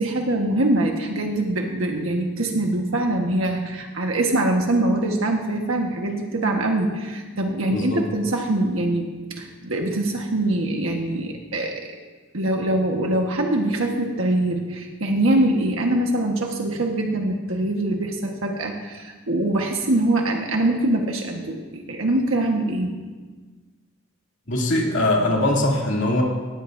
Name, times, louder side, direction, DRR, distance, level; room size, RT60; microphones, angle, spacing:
voice 1, 0.0-9.1 9.4-11.9 12.3-22.9, right 1 dB, 80° right, 1 dB, 1.4 m, -23 dB
voice 2, 7.7-8.1 24.5-26.2, left 1 dB, 60° left, -3 dB, 2.7 m, -21 dB
20.0 x 15.5 x 2.7 m, 1.4 s
head